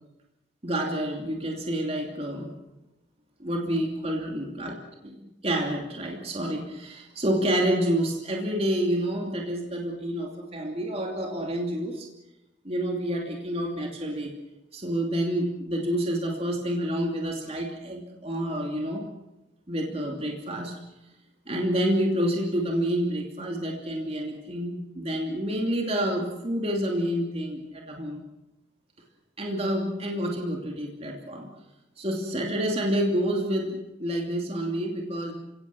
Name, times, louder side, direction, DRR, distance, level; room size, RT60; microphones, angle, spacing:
voice 1, 0.6-2.5 3.4-4.7 5.2-12.1 12.6-14.3 14.7-19.0 19.7-20.7 21.5-28.2 29.4-31.5 32.0-35.3, equal, 35° right, 1 dB, 2.8 m, -28 dB
29.5 x 17.5 x 7.1 m, 0.95 s
head